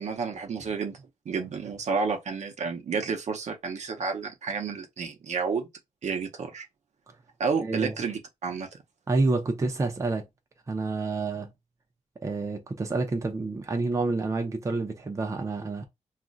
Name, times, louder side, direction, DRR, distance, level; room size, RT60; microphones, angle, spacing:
voice 1, 0.0-5.7 6.0-6.7 7.4-8.7, right 5 dB, 65° right, 0.6 m, -31 dB
voice 2, 7.6-7.9 9.1-10.2 10.7-11.5 12.2-15.9, right 3 dB, 25° right, 0.5 m, -28 dB
2.4 x 2.1 x 3.7 m
wide cardioid pair, 150°, 13 cm